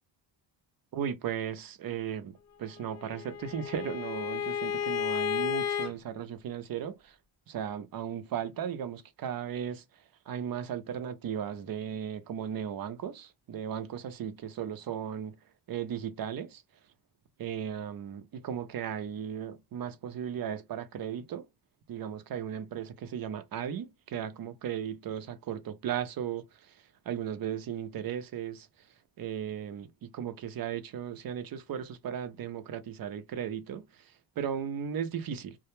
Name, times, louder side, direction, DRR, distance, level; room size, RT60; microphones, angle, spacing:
voice 1, 0.9-7.2 7.5-15.4 15.7-16.6 17.4-21.5 21.9-28.7 29.2-35.6, right 8 dB, 50° right, 0.5 m, -36 dB
Bowed string instrument, 2.8-5.9, left 8 dB, 40° left, 0.4 m, -32 dB
2.1 x 2.0 x 3.0 m
cardioid pair, 90°, 46 cm